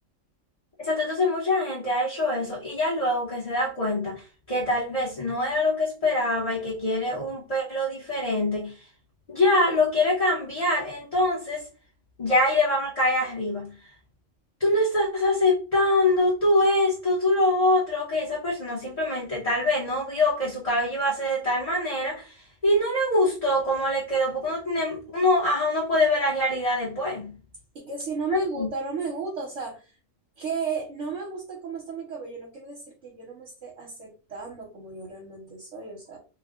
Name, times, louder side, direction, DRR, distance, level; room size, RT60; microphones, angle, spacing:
voice 1, 0.8-4.2 4.5-8.8 9.3-11.7 12.2-13.7 14.6-22.4 22.6-27.3 28.3-28.7, left 1 dB, 30° left, 1.1 m, -24 dB
voice 2, 27.7-30.0 30.4-36.2, right 4 dB, 65° right, 1.3 m, -34 dB
3.2 x 2.3 x 3.6 m
omnidirectional pair, 1.3 m